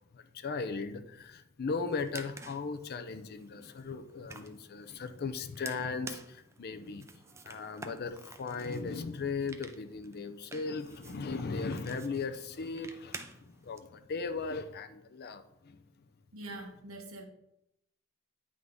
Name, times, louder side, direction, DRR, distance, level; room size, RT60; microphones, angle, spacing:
voice 1, 0.1-15.8, left 4 dB, 50° left, 0.5 m, -37 dB
sound 1, 1.8-13.8, right 3 dB, 15° right, 0.4 m, -51 dB
voice 2, 16.3-17.2, right 2 dB, 85° right, 1.2 m, -44 dB
9.2 x 3.7 x 3.7 m
head